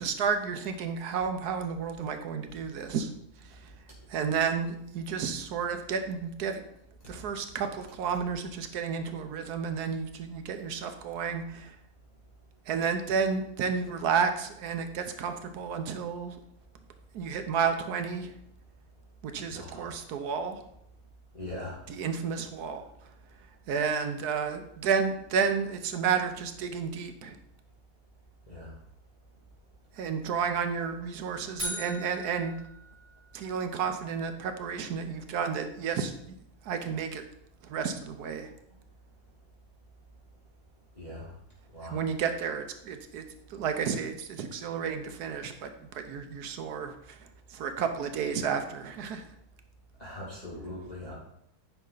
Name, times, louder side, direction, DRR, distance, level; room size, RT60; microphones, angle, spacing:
voice 1, 0.0-3.1 3.4-3.7 4.1-6.6 7.1-11.8 12.7-16.4 17.1-18.3 19.2-20.6 21.9-23.1 23.7-27.4 29.9-32.6 33.3-36.1 36.6-37.2 37.6-38.5 41.8-49.2, right 6 dB, 80° right, 7 dB, 1.3 m, -31 dB
voice 2, 19.5-19.9 21.3-21.8 28.5-28.7 41.0-41.3 41.7-42.0 50.0-51.1, left 1 dB, 25° left, -8 dB, 2.5 m, -40 dB
sound 1, 31.6-33.7, equal, 45° right, 3.5 m, -40 dB
9.6 x 5.5 x 3.9 m, 0.75 s
omnidirectional pair, 1.6 m